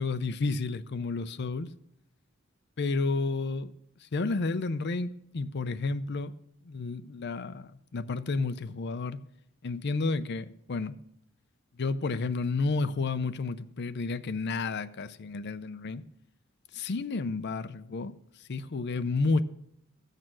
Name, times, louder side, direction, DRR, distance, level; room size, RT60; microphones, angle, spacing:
voice 1, 0.0-1.7 2.8-3.7 4.0-6.3 6.6-9.2 9.6-11.0 11.8-16.0 16.7-18.1 18.5-19.4, left 3 dB, 55° left, 0.5 m, -31 dB
15.0 x 6.6 x 6.2 m
head